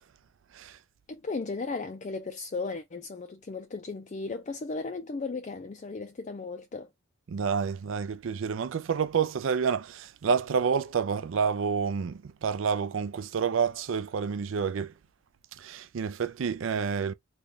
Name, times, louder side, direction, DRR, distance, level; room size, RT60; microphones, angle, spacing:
voice 1, 1.1-6.9, left 3 dB, 35° left, 0.4 m, -36 dB
voice 2, 7.3-14.9 15.6-17.1, right 6 dB, 70° right, 0.4 m, -29 dB
3.3 x 2.2 x 3.9 m
head